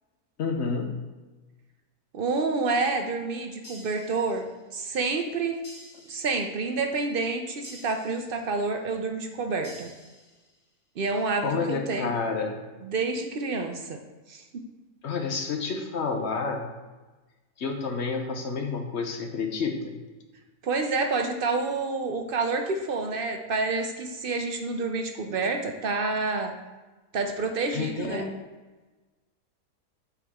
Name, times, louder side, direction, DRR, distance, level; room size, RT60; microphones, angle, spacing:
voice 1, 0.4-0.9 11.4-12.6 15.0-16.7 17.6-19.9 27.7-28.3, left 4 dB, 55° left, 4 dB, 0.9 m, -29 dB
voice 2, 2.1-5.6 6.1-9.9 11.0-12.1 12.8-14.0 14.3-14.6 20.6-26.6 27.1-28.2, right 3 dB, 60° right, 4 dB, 0.6 m, -28 dB
sound 1, 3.6-4.7 5.6-6.7 7.6-8.7 9.6-10.7, equal, 25° left, 0.8 m, -50 dB
8.3 x 4.8 x 3.5 m, 1.2 s
omnidirectional pair, 1.6 m